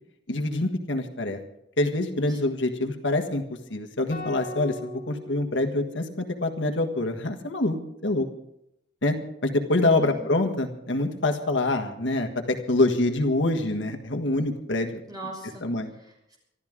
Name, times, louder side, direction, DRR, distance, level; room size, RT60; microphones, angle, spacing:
voice 1, 0.3-1.4 1.8-3.4 3.7-7.8 8.0-8.3 9.0-9.2 9.4-15.0 15.6-15.9, left 2 dB, 70° left, 4 dB, 1.6 m, -25 dB
sound 1, 4.1-6.4, left 1 dB, 45° left, 3.5 m, -40 dB
voice 2, 15.1-16.4, right 2 dB, 20° right, 0 dB, 5.8 m, -41 dB
26.0 x 12.5 x 3.7 m, 0.79 s
head